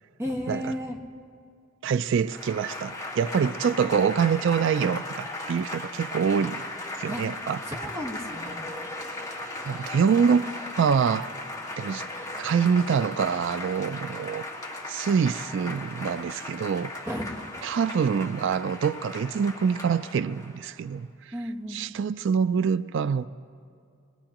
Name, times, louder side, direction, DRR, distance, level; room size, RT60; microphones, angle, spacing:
voice 1, 0.2-1.0 7.1-7.2 7.7-8.7 17.1-17.4 21.3-21.8, equal, 15° right, 1.5 m, -33 dB
voice 2, 1.8-6.6 7.0-7.6 9.7-10.4 10.8-11.3 11.8-12.0 12.4-14.5 14.9-16.9 17.6-21.3 21.7-23.3, right 6 dB, 60° right, 0.3 m, -25 dB
Applause / Crowd, 2.2-20.8, left 2 dB, 15° left, 1.8 m, -37 dB
22.0 x 21.0 x 2.9 m
head